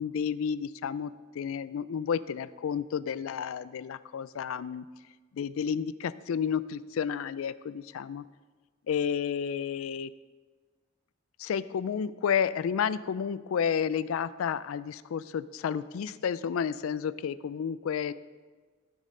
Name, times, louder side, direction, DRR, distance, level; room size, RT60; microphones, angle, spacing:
voice 1, 0.0-4.8 5.3-7.5 7.9-8.2 8.9-10.1 11.4-18.1, left 7 dB, 90° left, 16 dB, 0.4 m, -31 dB
16.0 x 5.4 x 3.8 m, 1.4 s
head